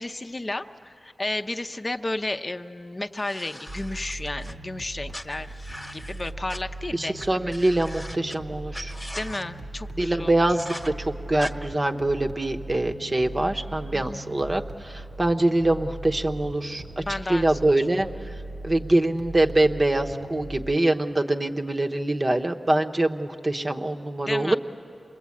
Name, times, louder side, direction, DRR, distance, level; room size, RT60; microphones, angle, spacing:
voice 1, 0.0-5.5 5.9-7.5 9.1-10.5 13.9-14.2 17.0-17.5 17.8-17.9 24.2-24.6, left 2 dB, 30° left, 7 dB, 0.7 m, -32 dB
sound 1, 3.2-4.5 5.1-6.6 7.2-7.3 7.5-8.4 8.7-9.4 10.6-10.9 11.4-11.5, left 1 dB, 15° left, 1.3 m, -40 dB
sound 2, 3.7-20.8, right 2 dB, 60° right, 0.9 m, -39 dB
voice 2, 6.9-8.9 9.9-18.1 18.6-24.6, right 2 dB, 30° right, 4 dB, 0.9 m, -24 dB
28.0 x 21.0 x 8.5 m, 2.8 s
wide cardioid pair, 75°, 0 cm